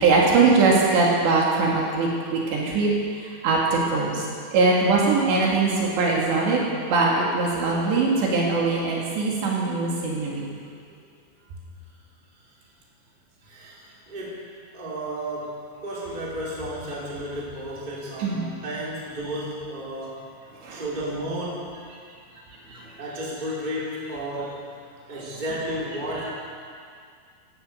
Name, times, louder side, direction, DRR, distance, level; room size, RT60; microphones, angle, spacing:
voice 1, 0.0-2.9 3.4-4.2 4.5-6.6 6.9-10.5 18.2-18.4 20.6-20.9 22.7-22.9 25.1-25.4 26.1-26.3, right 3 dB, 65° right, -3 dB, 4.1 m, -21 dB
voice 2, 13.5-13.8 14.1-14.4 14.7-20.2 20.7-21.8 23.0-24.7 25.1-26.3, equal, 10° right, -6 dB, 3.1 m, -32 dB
15.5 x 14.5 x 6.4 m, 2.2 s
omnidirectional pair, 5.7 m